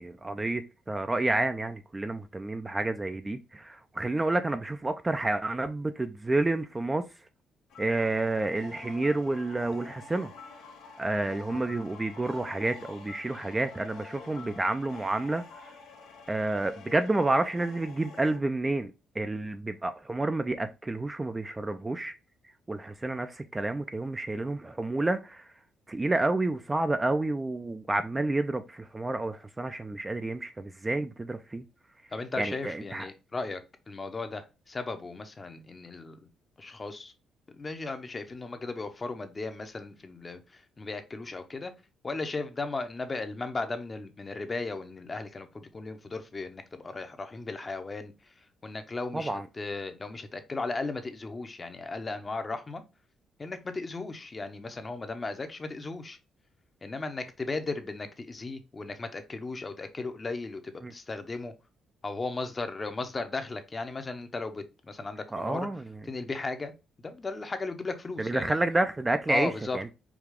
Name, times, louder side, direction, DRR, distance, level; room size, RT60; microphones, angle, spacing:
voice 1, 0.0-7.0 7.8-10.3 11.0-15.7 16.3-18.9 19.2-22.1 22.7-25.5 25.9-31.6 32.4-33.1 49.1-49.5 60.8-60.9 65.3-66.0 68.2-69.9, right 2 dB, 20° right, 0.4 m, -29 dB
sound 1, 7.7-18.4, left 4 dB, 90° left, 1.0 m, -48 dB
voice 2, 32.1-33.6 33.9-36.2 36.6-37.1 37.5-41.7 42.0-48.1 48.6-52.8 53.4-56.2 56.8-61.5 62.0-65.7 66.1-66.7 67.0-68.6 69.3-69.8, left 3 dB, 30° left, 0.8 m, -36 dB
4.8 x 2.3 x 3.6 m
cardioid pair, 90°, 0 cm